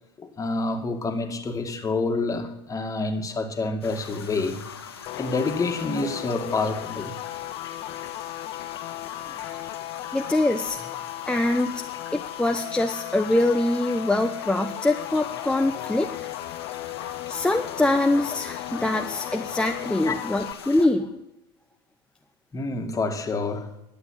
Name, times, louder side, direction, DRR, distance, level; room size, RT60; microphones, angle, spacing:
voice 1, 0.2-4.6 5.2-7.2 10.0-10.1 20.1-20.4 22.5-23.7, left 3 dB, 25° left, 2.2 m, -28 dB
sound 1, 3.8-20.9, left 7 dB, 85° left, 1.8 m, -42 dB
sound 2, 5.1-20.5, left 16 dB, 50° left, 0.6 m, -36 dB
voice 2, 10.1-11.0 11.3-11.8 12.1-16.1 17.3-21.1, left 2 dB, 5° left, 0.9 m, -24 dB
11.5 x 8.7 x 9.8 m
hypercardioid pair, 80°, 13 cm